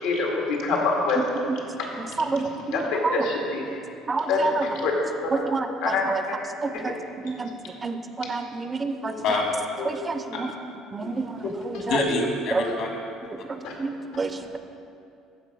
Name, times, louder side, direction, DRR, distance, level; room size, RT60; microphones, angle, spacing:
voice 1, 0.0-1.3 1.8-3.8 4.3-4.9 5.2-5.4 5.8-6.4 9.1-9.2 9.8-9.9 11.4-11.8 12.6-12.7 13.6-13.7, left 3 dB, 90° left, -1 dB, 2.0 m, -27 dB
voice 2, 2.2-3.2 4.1-4.7 5.3-6.2 6.6-6.9 7.2-7.5 7.8-9.1 9.9-10.5 10.9-12.0 12.5-12.6 13.5-14.6, right 4 dB, 20° right, 8 dB, 0.5 m, -29 dB
voice 3, 11.9-12.9, left 3 dB, 70° left, 1 dB, 1.9 m, -25 dB
14.5 x 5.0 x 5.4 m, 2.5 s
cardioid pair, 135°, 0 cm